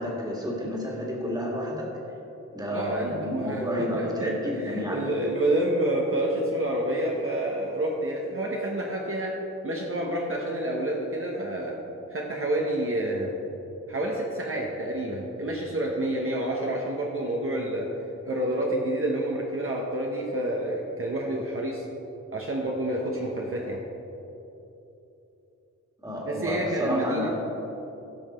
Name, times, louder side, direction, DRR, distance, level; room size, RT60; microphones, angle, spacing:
voice 1, 0.0-1.9 2.5-5.1 26.0-27.4, left 1 dB, 15° right, -2 dB, 2.0 m, -30 dB
voice 2, 2.7-9.4 9.6-11.8 12.1-13.3 13.9-17.9 18.2-21.8 22.3-23.8 26.3-27.3, right 1 dB, 50° right, -2 dB, 1.1 m, -28 dB
16.0 x 5.9 x 4.3 m, 3.0 s
wide cardioid pair, 120°, 29 cm